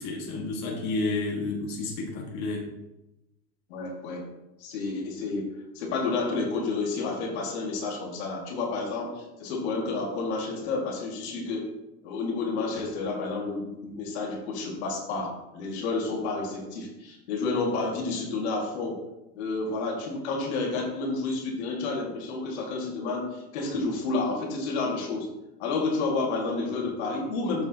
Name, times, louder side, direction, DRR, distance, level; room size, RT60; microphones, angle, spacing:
voice 1, 0.0-2.7, left 3 dB, 55° left, -2 dB, 1.9 m, -31 dB
voice 2, 3.7-4.3 4.6-5.4 5.8-11.7 12.0-19.0 19.4-25.3 25.6-27.7, left 3 dB, 85° left, -1 dB, 2.2 m, -30 dB
7.3 x 7.2 x 2.9 m, 0.94 s
supercardioid pair, 110°, 32 cm